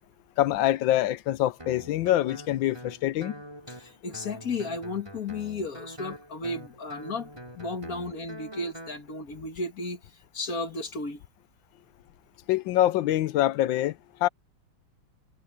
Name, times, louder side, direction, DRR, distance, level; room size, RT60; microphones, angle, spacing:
voice 1, 0.4-3.3 12.5-14.3, left 13 dB, 85° left, 1.4 m, -25 dB
Guitar, 1.6-9.0, right 1 dB, 15° right, 4.9 m, -44 dB
voice 2, 3.7-7.3 7.6-10.0 10.3-11.2, left 3 dB, 50° left, 2.2 m, -34 dB
omnidirectional pair, 2.0 m